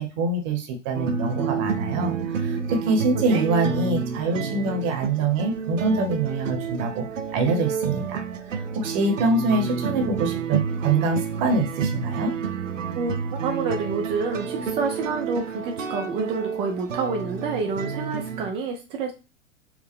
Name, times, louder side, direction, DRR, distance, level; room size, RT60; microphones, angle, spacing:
voice 1, 0.0-7.0 7.3-12.3, right 3 dB, 40° right, 4 dB, 1.0 m, -25 dB
sound 1, 0.9-18.5, right 6 dB, 80° right, 0.6 m, -29 dB
voice 2, 13.4-19.1, right 4 dB, 15° right, 1 dB, 0.3 m, -28 dB
4.8 x 2.1 x 3.6 m, 0.29 s
figure-of-eight pair, 95°, 37 cm